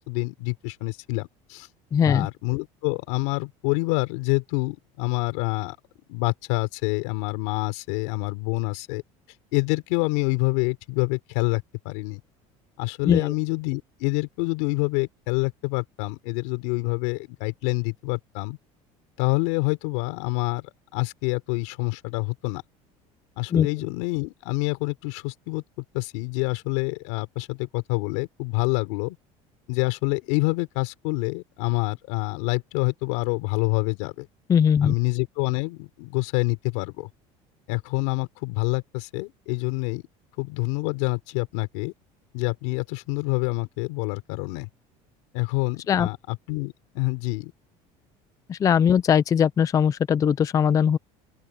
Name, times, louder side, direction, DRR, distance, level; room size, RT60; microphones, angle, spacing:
voice 1, 0.1-1.7 2.1-5.8 6.1-9.0 9.5-12.2 12.8-18.6 19.2-22.6 23.4-25.6 25.9-29.2 29.7-34.3 34.8-37.1 37.7-40.0 40.4-41.9 42.3-44.7 45.3-47.5, left 25 dB, 90° left, 3.9 m, -27 dB
voice 2, 1.9-2.3 13.0-13.3 23.5-23.7 34.5-34.9 45.9-46.1 48.5-51.0, left 8 dB, 25° left, 0.4 m, -20 dB
open air
cardioid pair, 145°, 14 cm